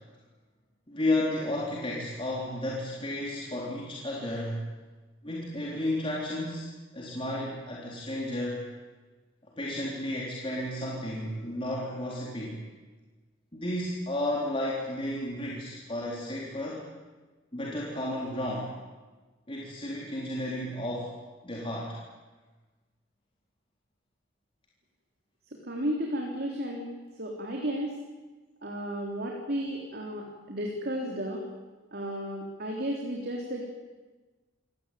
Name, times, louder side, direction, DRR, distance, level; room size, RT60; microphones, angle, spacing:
voice 1, 0.9-4.7 5.2-8.7 9.4-12.6 13.5-16.8 17.5-18.7 19.5-21.1 21.4-22.0, left 1 dB, 25° left, -4 dB, 3.9 m, -32 dB
voice 2, 25.6-26.9 27.2-27.9 28.6-31.4 31.9-33.6, equal, 50° right, 0 dB, 3.5 m, -33 dB
27.0 x 18.0 x 9.2 m, 1.3 s
head